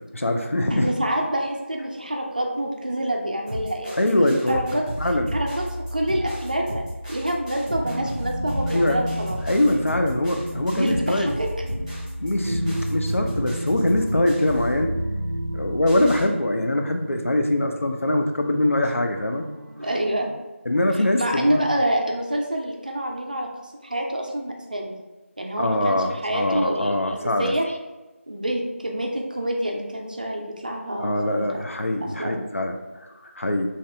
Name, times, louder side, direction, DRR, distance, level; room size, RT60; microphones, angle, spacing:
voice 1, 0.0-0.9 4.0-4.6 5.0-5.3 8.7-9.0 9.4-11.3 12.2-15.0 15.5-19.5 20.7-21.6 25.6-27.5 31.0-33.7, left 1 dB, 70° left, 4 dB, 0.4 m, -23 dB
voice 2, 0.7-4.0 4.5-4.8 5.3-5.6 5.9-6.8 7.1-9.4 10.7-11.5 19.8-20.3 20.9-25.0 25.4-26.9 27.4-27.6 28.3-31.6 32.2-32.4, right 1 dB, 35° right, 1 dB, 0.4 m, -27 dB
sound 1, 3.5-16.3, equal, 10° right, 0.7 m, -32 dB
sound 2, 7.8-20.4, right 1 dB, 85° right, 0.6 m, -34 dB
2.8 x 2.4 x 3.1 m, 1.2 s
figure-of-eight pair, 170°, 7 cm